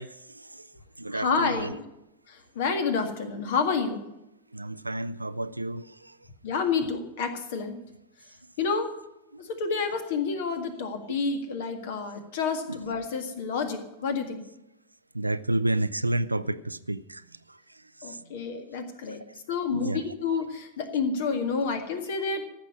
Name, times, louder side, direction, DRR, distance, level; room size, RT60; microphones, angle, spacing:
voice 1, 0.0-1.8 4.5-6.3 8.4-8.5 9.3-9.4 12.7-12.8 15.1-18.8 19.3-19.4 19.7-20.1, right 1 dB, 85° right, 0.4 m, -32 dB
voice 2, 1.1-1.8 2.3-4.0 6.4-7.8 8.6-8.9 9.4-14.4 18.0-22.5, left 5 dB, 55° left, 1.9 m, -29 dB
14.5 x 6.2 x 9.8 m
figure-of-eight pair, 90°, 0 cm